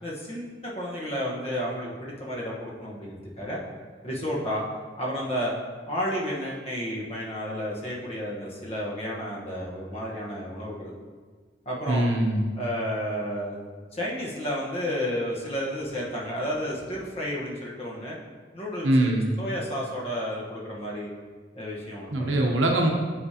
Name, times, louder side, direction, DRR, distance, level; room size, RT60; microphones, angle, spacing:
voice 1, 0.0-3.6 4.0-4.6 5.0-5.5 5.9-10.9 11.6-12.1 12.6-13.6 13.9-18.2 18.5-21.1 21.5-22.6, equal, 30° left, -4 dB, 1.2 m, -32 dB
voice 2, 11.9-12.4 18.8-19.3 22.1-22.9, right 1 dB, 90° right, 2 dB, 0.9 m, -22 dB
8.0 x 5.1 x 2.8 m, 1.5 s
head